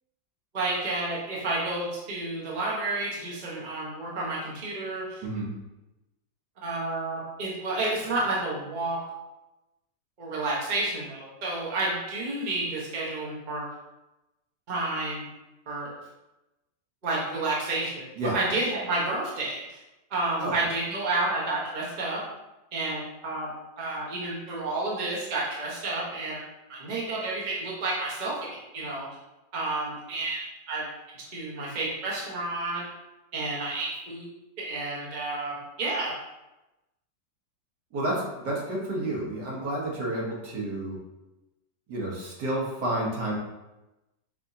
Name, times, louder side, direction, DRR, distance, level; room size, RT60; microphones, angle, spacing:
voice 1, 0.5-5.2 6.6-9.0 10.2-13.6 14.7-15.2 15.7-15.9 17.0-18.0 18.3-19.8 20.1-22.2 22.7-29.1 29.5-30.8 31.3-32.8 33.3-34.3 34.6-36.1, right 2 dB, 30° right, -5 dB, 1.0 m, -30 dB
voice 2, 37.9-41.0 41.9-43.4, right 1 dB, 65° right, -4 dB, 1.6 m, -30 dB
5.2 x 3.4 x 2.7 m, 0.99 s
omnidirectional pair, 1.9 m